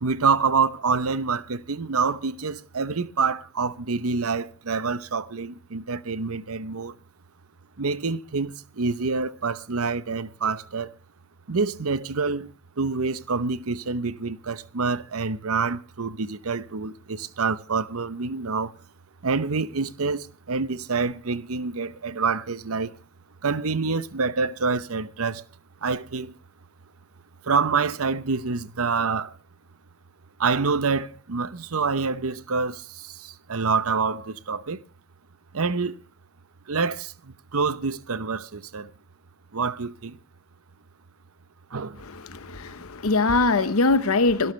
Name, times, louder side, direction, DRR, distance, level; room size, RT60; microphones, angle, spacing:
voice 1, 0.0-7.0 7.8-10.9 11.5-18.7 19.2-22.9 23.4-25.4 25.8-26.4 27.4-29.3 30.4-34.8 35.5-36.0 36.7-38.9 39.5-40.2 41.7-42.0 43.5-43.7, right 4 dB, 85° right, 0.9 m, -27 dB
voice 2, 42.0-44.5, left 3 dB, 85° left, 0.9 m, -22 dB
25.5 x 12.0 x 3.3 m
head